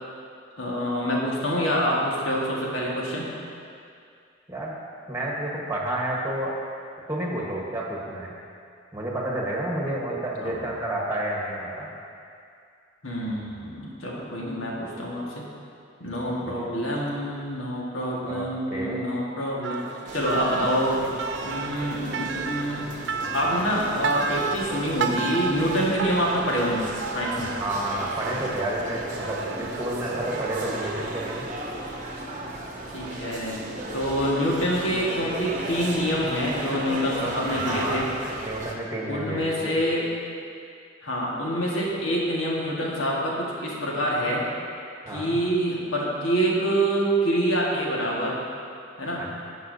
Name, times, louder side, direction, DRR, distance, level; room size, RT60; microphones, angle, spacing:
voice 1, 0.6-3.3 10.4-10.6 13.0-15.4 16.0-19.8 20.1-21.0 21.4-22.8 23.3-27.5 32.9-33.6 33.9-38.1 39.1-40.1 41.0-44.4 45.1-48.4 49.0-49.3, equal, 85° left, -4 dB, 1.6 m, -26 dB
voice 2, 5.1-6.5 7.1-8.3 8.9-11.9 16.4-16.5 18.2-18.4 18.7-19.1 23.1-23.3 27.4-31.4 37.5-38.0 38.4-39.7 45.1-45.4 49.2-49.3, right 1 dB, 15° right, -3 dB, 1.2 m, -30 dB
sound 1, 19.6-31.4, right 5 dB, 60° right, 0.4 m, -33 dB
sound 2, 20.1-38.7, right 1 dB, 40° right, 0.8 m, -35 dB
15.0 x 5.5 x 2.7 m, 2.4 s
head